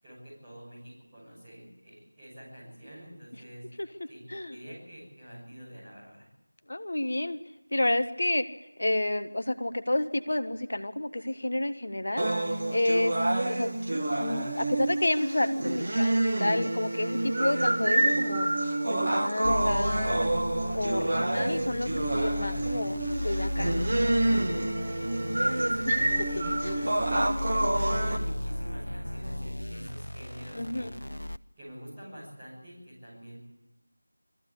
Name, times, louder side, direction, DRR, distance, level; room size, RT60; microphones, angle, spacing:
voice 1, 0.0-3.6 4.1-4.2 4.5-6.3 24.8-25.0 25.4-27.2 27.8-30.9 31.6-33.4, equal, 10° right, -12 dB, 6.2 m, -47 dB
voice 2, 6.7-7.4 7.7-8.4 8.8-12.3 12.7-13.2 13.4-13.7 14.2-18.5 18.9-20.3 20.7-23.0 23.2-23.9 25.9-26.0 26.4-26.9 30.5-30.9, left 1 dB, 45° left, 10 dB, 1.2 m, -30 dB
sound 1, 12.2-28.2, right 1 dB, 35° right, 1.6 m, -28 dB
sound 2, 19.4-31.4, left 1 dB, 75° left, 0.7 m, -35 dB
22.0 x 14.5 x 8.4 m, 0.96 s
figure-of-eight pair, 170°, 0 cm